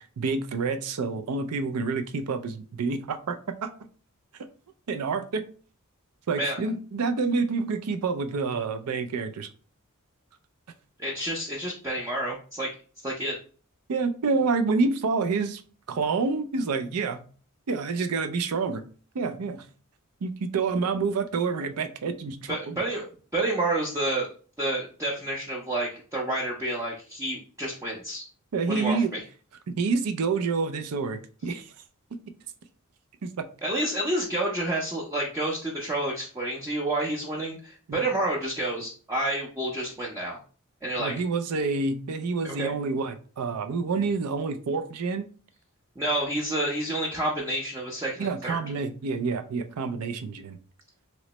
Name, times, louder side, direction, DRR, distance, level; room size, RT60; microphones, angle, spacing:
voice 1, 0.2-3.4 3.6-3.7 4.9-5.4 6.3-9.5 13.9-15.6 15.9-17.2 17.7-18.8 19.1-19.6 20.2-22.8 28.5-29.1 29.7-31.7 33.2-33.4 37.9-38.0 41.0-45.2 48.2-50.6, right 4 dB, 85° right, 9 dB, 0.5 m, -28 dB
voice 2, 11.0-12.7 13.0-13.4 22.5-23.0 23.3-24.3 24.6-28.2 28.7-29.2 33.6-40.4 40.8-41.1 42.4-42.7 46.0-48.6, right 1 dB, 15° right, -5 dB, 0.5 m, -29 dB
3.1 x 3.0 x 2.9 m, 0.40 s
head